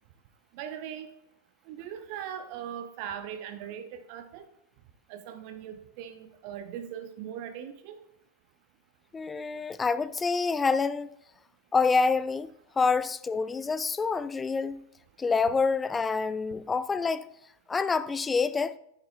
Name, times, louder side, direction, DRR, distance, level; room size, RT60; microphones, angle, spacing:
voice 1, 0.5-1.1 1.7-4.5 5.1-8.0, right 9 dB, 45° right, 0.7 m, -40 dB
voice 2, 9.1-11.1 11.7-12.5 12.8-14.8 15.2-17.3 17.7-18.8, left 4 dB, 15° left, 0.3 m, -27 dB
10.5 x 9.7 x 2.2 m
figure-of-eight pair, 90°, 0 cm